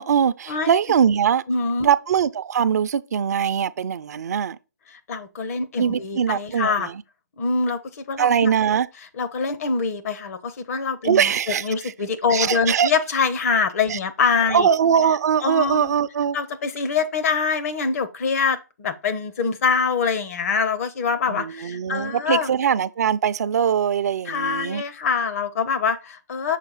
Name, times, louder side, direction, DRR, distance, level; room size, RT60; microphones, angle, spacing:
voice 1, 0.0-1.4 1.8-4.6 5.8-7.0 8.2-8.9 11.0-11.9 12.3-12.9 13.9-14.0 14.5-16.4 21.3-24.8, right 8 dB, 60° right, 0.5 m, -21 dB
voice 2, 1.5-1.9 4.9-6.9 7.4-8.5 9.2-14.7 15.4-15.9 16.3-22.5 24.3-26.6, left 5 dB, 55° left, 0.9 m, -24 dB
6.5 x 4.1 x 3.9 m
hypercardioid pair, 145°, 10 cm